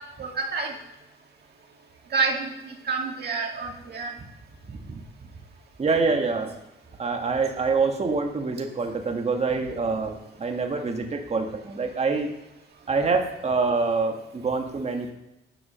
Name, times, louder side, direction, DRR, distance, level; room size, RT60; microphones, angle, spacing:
voice 1, 0.2-0.7 2.1-4.1, right 4 dB, 55° right, 1 dB, 2.0 m, -28 dB
voice 2, 4.7-5.0 5.8-6.5 7.0-12.3 12.9-15.1, right 4 dB, 35° right, 3 dB, 1.5 m, -26 dB
10.0 x 4.9 x 6.2 m, 0.92 s
cardioid pair, 90°, 20 cm